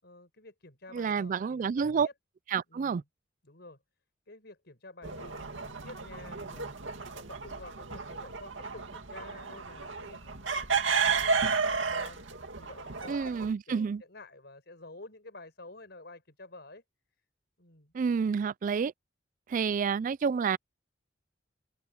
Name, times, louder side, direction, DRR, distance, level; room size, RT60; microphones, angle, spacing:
voice 1, 0.0-2.1 2.7-3.0 3.4-3.8 4.3-6.7 7.1-16.8 17.6-17.9, left 2 dB, 60° left, 6.1 m, -50 dB
voice 2, 0.9-2.1 2.5-3.0 13.1-14.0 17.9-18.9 19.5-20.6, right 6 dB, 45° right, 0.3 m, -29 dB
sound 1, 5.0-13.5, right 5 dB, 80° right, 2.2 m, -32 dB
head